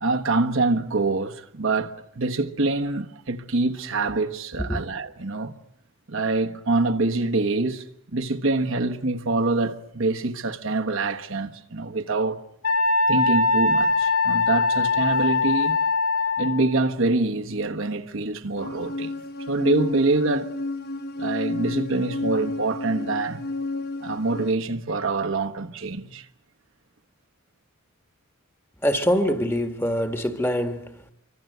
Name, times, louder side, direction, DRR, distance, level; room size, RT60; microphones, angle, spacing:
voice 1, 0.0-5.5 6.1-7.8 8.1-12.4 13.1-15.8 16.4-19.1 19.5-20.5 21.2-23.4 24.0-26.2, right 3 dB, 65° right, 1.4 m, -25 dB
Wind instrument woodwind instrument, 12.6-16.7, left 3 dB, 80° left, 3.9 m, -21 dB
sound 1, 18.6-24.5, left 2 dB, 45° left, 1.1 m, -31 dB
voice 2, 28.8-31.1, equal, 10° left, 1.6 m, -24 dB
27.0 x 24.5 x 8.0 m
head